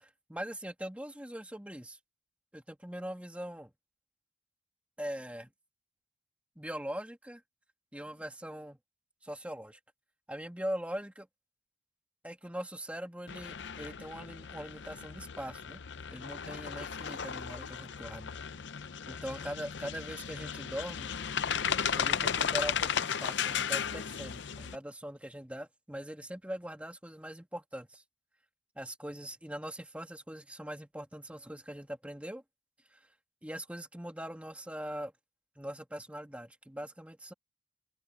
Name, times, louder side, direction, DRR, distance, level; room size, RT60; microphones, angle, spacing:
voice 1, 0.0-2.0 2.5-3.7 5.0-5.5 6.6-7.4 7.9-8.8 9.2-9.8 10.3-11.3 12.2-15.8 16.1-18.3 19.1-21.2 21.9-28.0 28.8-32.4 32.9-33.1 33.4-35.1 35.6-37.3, equal, 5° right, 2.0 m, -41 dB
sound 1, 13.3-24.8, left 7 dB, 65° left, 0.6 m, -35 dB
head